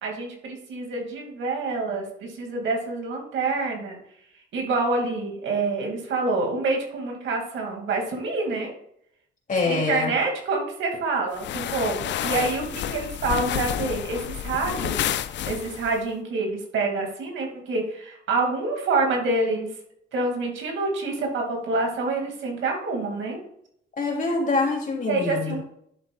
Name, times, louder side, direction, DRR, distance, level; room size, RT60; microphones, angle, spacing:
voice 1, 0.0-4.0 4.5-8.7 9.6-15.0 15.5-19.7 20.1-23.4 25.1-25.6, right 3 dB, 75° right, 1 dB, 2.7 m, -27 dB
voice 2, 9.5-10.1 24.0-25.5, left 3 dB, 40° left, 0 dB, 3.2 m, -25 dB
sound 1, 11.3-16.0, left 11 dB, 65° left, 0.5 m, -30 dB
11.0 x 7.6 x 2.5 m, 0.71 s
cardioid pair, 90°, 20 cm